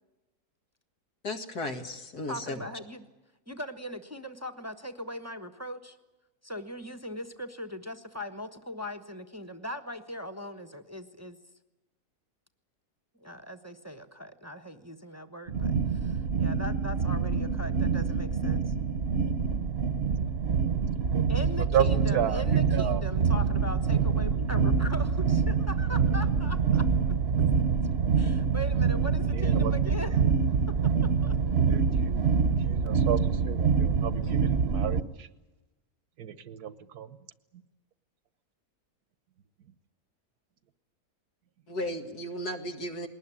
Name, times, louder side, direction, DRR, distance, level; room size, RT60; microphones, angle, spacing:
voice 1, 1.2-2.6 34.2-34.4 41.7-43.1, left 1 dB, 80° left, 5 dB, 2.6 m, -35 dB
voice 2, 2.3-3.1 3.5-6.0 6.4-11.4 13.2-18.7 21.3-27.2 28.2-30.2 30.8-31.6, equal, 10° right, 7 dB, 0.9 m, -40 dB
sound 1, 15.5-35.0, right 5 dB, 50° right, 1.1 m, -26 dB
voice 3, 21.7-22.4 22.7-23.0 29.4-29.7 31.7-32.2 32.7-33.2 33.5-35.0 36.2-37.1, right 10 dB, 75° right, 14 dB, 1.5 m, -31 dB
21.0 x 19.0 x 10.0 m, 1.1 s
omnidirectional pair, 1.6 m